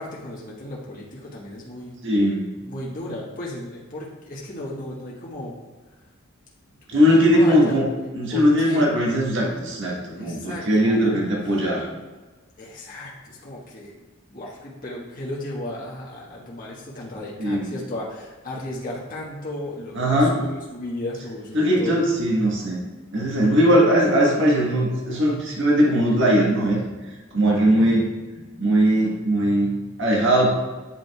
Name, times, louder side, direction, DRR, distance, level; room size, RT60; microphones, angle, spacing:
voice 1, 0.0-2.0 2.7-5.5 6.9-7.8 8.3-8.9 10.1-11.2 12.6-14.0 14.3-22.0 23.5-23.6 27.8-28.0, left 1 dB, 40° left, -6 dB, 1.5 m, -35 dB
voice 2, 2.0-2.6 6.9-7.9 8.1-11.9 17.4-17.7 19.9-20.3 21.5-22.8 23.1-26.8 27.3-29.7 30.0-30.5, equal, 60° right, -3 dB, 1.5 m, -20 dB
9.0 x 4.9 x 2.4 m, 1.3 s
head